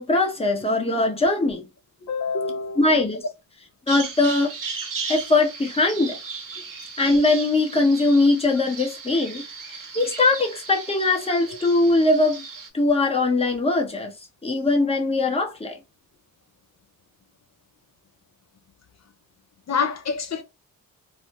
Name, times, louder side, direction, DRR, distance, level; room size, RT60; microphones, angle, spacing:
voice 1, 0.0-1.6 2.8-3.2 3.9-4.5 5.1-6.2 7.0-9.4 9.7-12.4 12.7-14.1 14.4-15.8, left 2 dB, 15° left, 0.8 m, -21 dB
voice 2, 2.0-3.1 19.7-20.4, left 5 dB, 50° left, 0.5 m, -27 dB
Bird vocalization bird call bird song, 3.9-12.7, right 5 dB, 65° right, 0.8 m, -36 dB
3.2 x 2.0 x 2.8 m
wide cardioid pair, 115°, 35 cm